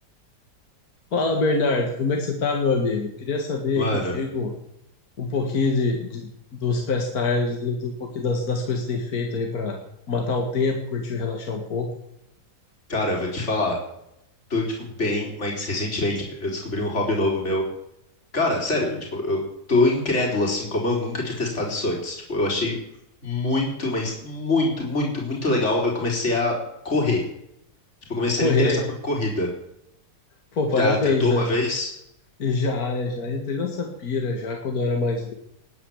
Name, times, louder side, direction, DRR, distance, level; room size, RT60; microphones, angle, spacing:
voice 1, 1.1-3.9 4.1-4.5 5.2-6.3 6.6-9.8 10.1-11.9 28.4-28.8 30.5-31.5 32.4-35.3, left 3 dB, 60° left, 2 dB, 2.5 m, -24 dB
voice 2, 3.7-4.1 12.9-13.8 14.5-17.6 18.3-19.4 19.7-22.8 23.2-26.6 26.8-27.2 28.1-28.8 29.0-29.5 30.8-31.9, left 2 dB, 40° left, -1 dB, 4.5 m, -24 dB
20.0 x 9.9 x 7.3 m, 0.80 s
omnidirectional pair, 1.8 m